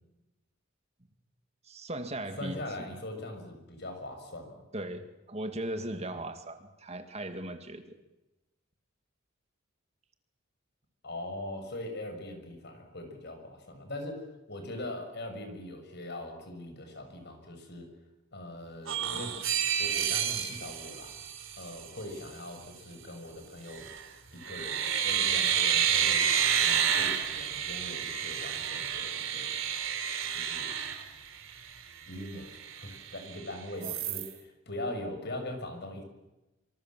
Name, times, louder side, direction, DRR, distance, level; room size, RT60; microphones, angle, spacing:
voice 1, 1.6-2.6 4.7-8.0 33.8-33.9, right 1 dB, 30° right, 8 dB, 2.0 m, -38 dB
voice 2, 2.4-4.6 11.0-17.9 18.3-19.4 19.8-21.1 21.6-23.9 24.3-29.6 30.3-30.7 32.1-36.0, left 1 dB, 55° left, 6 dB, 6.4 m, -41 dB
sound 1, 18.9-21.9 23.7-24.1 24.4-31.7 32.1-32.2 32.5-33.4 33.8-34.3, right 8 dB, 70° right, 3.3 m, -30 dB
25.5 x 25.5 x 7.5 m, 0.99 s
head